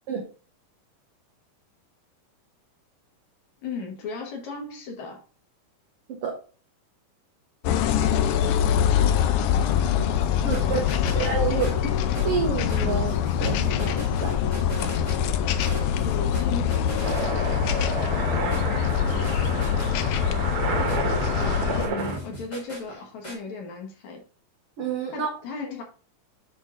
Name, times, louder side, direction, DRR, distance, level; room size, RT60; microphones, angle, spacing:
voice 1, 3.6-5.2 9.6-11.2 16.0-17.4 21.7-24.2 25.1-25.8, left 4 dB, 60° left, 1 dB, 2.4 m, -36 dB
sound 1, 7.6-21.9, left 9 dB, 85° left, 1.8 m, -24 dB
sound 2, 10.2-23.4, right 1 dB, 25° left, 0.9 m, -41 dB
voice 2, 10.4-10.8 11.1-11.9 12.2-14.4 24.8-25.3, right 6 dB, 70° right, 0 dB, 1.4 m, -28 dB
sound 3, 17.0-22.2, right 3 dB, 55° right, 1.7 m, -30 dB
9.9 x 3.7 x 3.7 m, 0.39 s
omnidirectional pair, 4.0 m